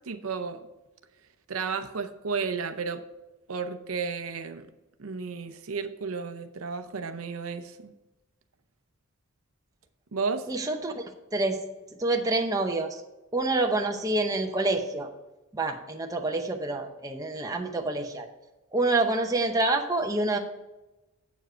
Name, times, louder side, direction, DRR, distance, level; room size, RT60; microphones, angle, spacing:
voice 1, 0.0-0.6 1.5-3.0 3.5-4.7 5.0-7.9 10.1-10.5, right 5 dB, 75° right, 8 dB, 0.7 m, -33 dB
voice 2, 10.5-11.0 11.3-11.6 12.0-13.0 13.3-15.1 15.5-18.3 18.7-20.4, right 2 dB, 15° right, 3 dB, 0.8 m, -27 dB
8.1 x 7.2 x 4.4 m, 1.0 s
head